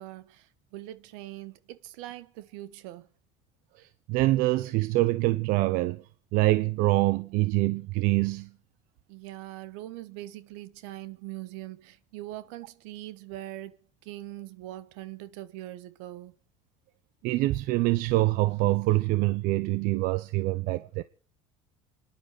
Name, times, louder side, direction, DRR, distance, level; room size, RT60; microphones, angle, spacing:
voice 1, 0.0-3.1 9.1-13.8 14.0-16.3, right 15 dB, 85° right, 1.3 m, -42 dB
voice 2, 3.8-6.0 6.3-8.5 17.2-21.0, right 19 dB, 70° right, 0.7 m, -25 dB
27.0 x 10.5 x 4.8 m
supercardioid pair, 105°, 15 cm